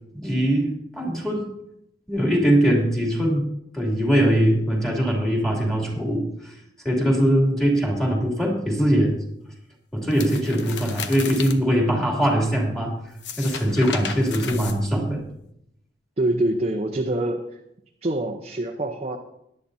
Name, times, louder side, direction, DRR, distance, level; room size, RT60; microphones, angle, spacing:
voice 1, 0.1-0.7 1.0-1.4 2.1-3.4 3.7-6.5 6.8-9.1 9.9-12.9 13.4-15.2, equal, ahead, -2 dB, 2.9 m, -21 dB
sound 1, 10.1-11.6 13.1-15.3, left 6 dB, 85° left, 0.9 m, -35 dB
voice 2, 16.2-17.4 18.0-19.2, right 1 dB, 35° right, 0 dB, 0.8 m, -26 dB
17.5 x 11.0 x 2.7 m, 0.78 s
head